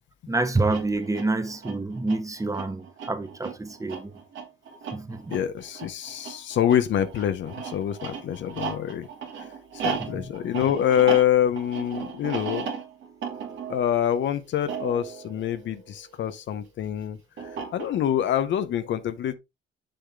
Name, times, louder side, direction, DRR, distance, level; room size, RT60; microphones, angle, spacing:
voice 1, 0.3-4.1 4.9-5.3 10.0-10.3, right 2 dB, 15° right, 1.2 m, -27 dB
sound 1, 0.6-16.3 17.4-18.2, right 6 dB, 75° right, 2.2 m, -36 dB
voice 2, 5.3-9.1 9.7-12.7 13.7-17.2 17.4-19.3, left 10 dB, 70° left, 0.8 m, -25 dB
6.8 x 5.7 x 3.5 m
cardioid pair, 90°, 20 cm